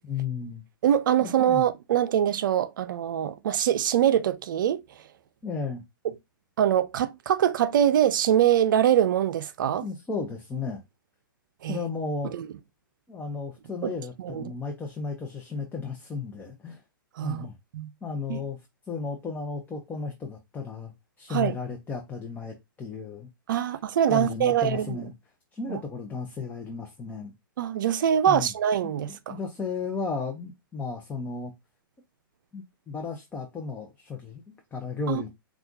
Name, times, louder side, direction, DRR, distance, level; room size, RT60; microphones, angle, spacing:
voice 1, 0.0-0.6 1.2-1.7 5.4-5.8 9.8-10.8 11.7-12.3 13.1-16.8 17.2-17.6 18.0-18.6 18.9-23.3 24.1-25.1 25.5-27.3 28.3-28.5 29.3-31.5 32.5-35.3, left 5 dB, 15° left, 0.8 m, -34 dB
voice 2, 0.8-4.8 6.6-9.8 11.6-11.8 12.2-12.5 13.8-13.9 14.2-14.4 17.2-17.9 18.3-18.4 21.3-21.6 23.5-25.0 25.7-25.8 27.6-29.4 35.1-35.2, right 10 dB, 65° right, 0.5 m, -24 dB
5.7 x 2.4 x 2.6 m
hypercardioid pair, 125°, 12 cm